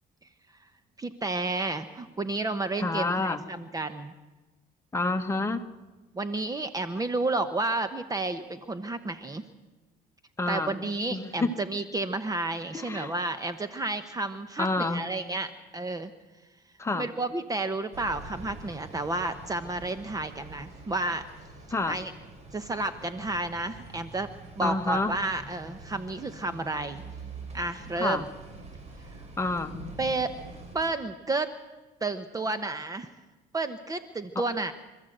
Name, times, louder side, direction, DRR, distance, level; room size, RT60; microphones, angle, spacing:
voice 1, 1.0-4.1 6.1-9.4 10.5-16.1 17.0-21.3 21.9-22.1 22.5-24.3 24.6-27.0 27.5-28.3 30.0-30.3 30.7-31.5 32.0-33.1 33.5-34.7, right 2 dB, 20° right, 10 dB, 1.0 m, -31 dB
voice 2, 2.8-3.4 4.9-5.6 10.4-10.7 11.1-11.5 12.7-13.1 14.6-15.1 16.8-17.1 21.7-22.0 24.6-25.1 28.0-28.2 29.4-29.7 34.3-34.4, left 2 dB, 15° left, 6 dB, 1.6 m, -28 dB
sound 1, 17.9-30.8, right 2 dB, 40° right, 5.4 m, -45 dB
26.0 x 13.5 x 8.0 m, 1.2 s
cardioid pair, 110°, 17 cm